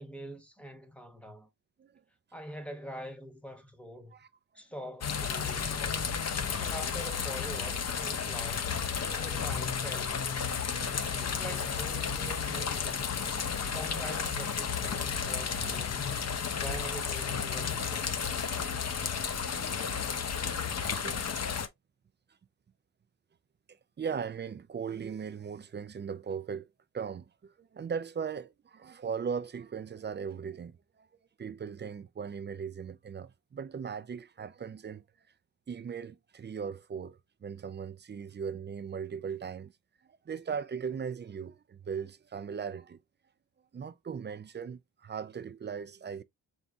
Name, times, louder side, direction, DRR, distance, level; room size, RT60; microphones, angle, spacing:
voice 1, 0.0-1.5 2.3-4.1 4.5-6.1 6.6-8.8 9.1-10.6 11.2-13.2 13.7-16.2 16.5-18.1, equal, 5° left, 1.0 m, -44 dB
sound 1, 5.0-21.7, left 6 dB, 45° left, 0.7 m, -32 dB
voice 2, 9.0-9.5 10.8-11.0 19.5-20.0 20.2-21.4 23.7-26.7 26.9-31.1 31.4-35.0 35.7-39.7 40.0-43.0 43.7-46.2, right 6 dB, 30° right, 0.4 m, -39 dB
4.1 x 3.6 x 2.6 m
wide cardioid pair, 95°, 35 cm